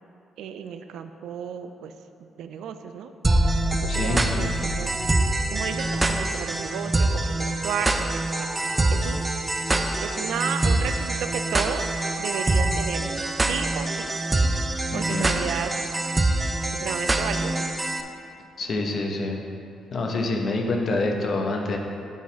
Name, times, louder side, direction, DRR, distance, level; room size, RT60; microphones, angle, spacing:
voice 1, 0.4-1.9 2.2-3.1 3.4-3.5 3.8-4.9 5.5-9.3 10.0-13.1 13.4-14.1 14.9-15.7 16.7-17.6, right 8 dB, 80° right, 8 dB, 0.3 m, -33 dB
sound 1, 3.2-18.0, right 2 dB, 20° right, 0.5 m, -25 dB
voice 2, 3.9-4.5 14.9-15.3 18.6-19.4 19.9-21.8, left 2 dB, 50° left, 1 dB, 1.0 m, -26 dB
7.2 x 4.0 x 5.8 m, 2.6 s
cardioid pair, 90°, 0 cm